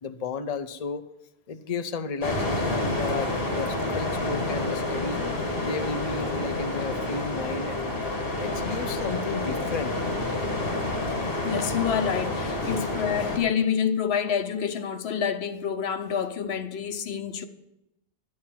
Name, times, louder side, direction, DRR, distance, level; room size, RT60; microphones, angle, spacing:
voice 1, 0.0-1.1 1.5-5.2 5.6-7.8 8.4-10.0, left 4 dB, 45° left, 0.7 m, -33 dB
sound 1, 2.2-13.4, left 2 dB, 65° left, 2.2 m, -29 dB
voice 2, 11.4-17.4, left 7 dB, 85° left, 1.0 m, -27 dB
11.5 x 8.6 x 5.8 m
omnidirectional pair, 1.0 m